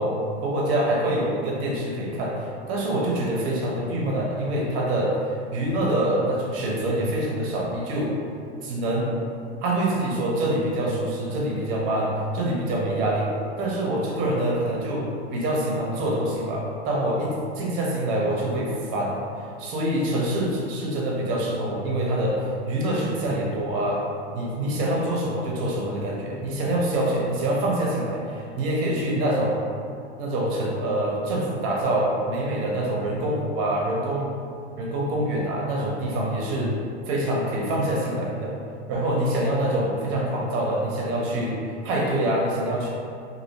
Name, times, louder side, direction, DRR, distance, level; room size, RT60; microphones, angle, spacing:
voice 1, 0.4-5.1 5.5-8.1 8.6-9.1 9.6-13.3 13.6-19.2 19.6-24.0 24.3-29.6 30.2-34.3 34.8-36.7 37.1-38.6 38.9-42.9, right 1 dB, 40° right, -3 dB, 0.6 m, -25 dB
2.5 x 2.1 x 2.8 m, 2.4 s
hypercardioid pair, 95°, 34 cm